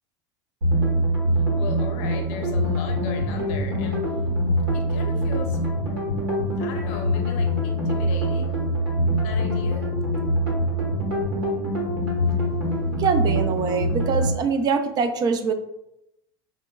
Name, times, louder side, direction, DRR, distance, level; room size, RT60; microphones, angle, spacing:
sound 1, 0.6-14.3, equal, 90° right, 1.2 m, -24 dB
voice 1, 1.3-4.1 4.7-5.6 6.6-8.6 9.2-10.1, left 5 dB, 60° left, 3 dB, 0.7 m, -38 dB
voice 2, 13.0-15.5, right 5 dB, 30° right, 7 dB, 0.4 m, -23 dB
4.2 x 2.1 x 2.2 m, 0.84 s
supercardioid pair, 115°, 13 cm